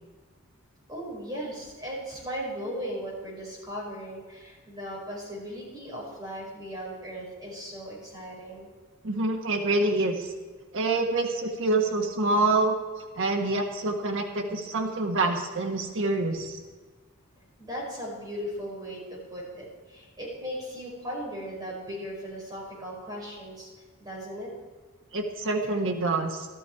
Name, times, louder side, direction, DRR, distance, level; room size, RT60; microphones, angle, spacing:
voice 1, 0.9-8.7 17.6-23.7 24.0-24.5, equal, 20° right, -5 dB, 5.4 m, -37 dB
voice 2, 9.0-10.3 10.7-12.8 13.2-16.6 25.1-26.5, right 2 dB, 60° right, 2 dB, 1.4 m, -26 dB
14.0 x 13.0 x 4.7 m, 1.4 s
head